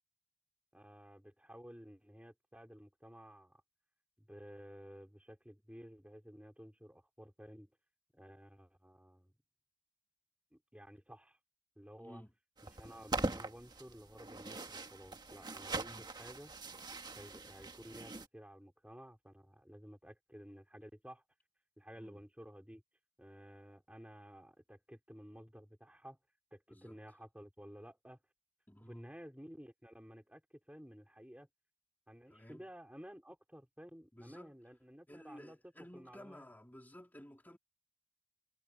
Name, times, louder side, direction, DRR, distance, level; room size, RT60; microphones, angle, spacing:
voice 1, 0.7-3.6 4.2-7.7 8.1-9.3 10.5-11.4 11.8-12.2 12.7-15.9 16.2-16.5 17.2-21.2 21.8-22.8 23.2-26.2 26.5-28.2 28.9-30.4 30.7-31.5 32.1-35.6 35.9-36.5, equal, 5° right, 4.7 m, -54 dB
voice 2, 12.0-12.3 15.8-16.1 22.0-22.3 26.7-27.0 28.7-29.1 32.3-32.6 34.1-34.5 35.1-37.6, equal, 10° left, 3.4 m, -54 dB
sound 1, 12.6-18.3, right 2 dB, 25° right, 1.7 m, -42 dB
head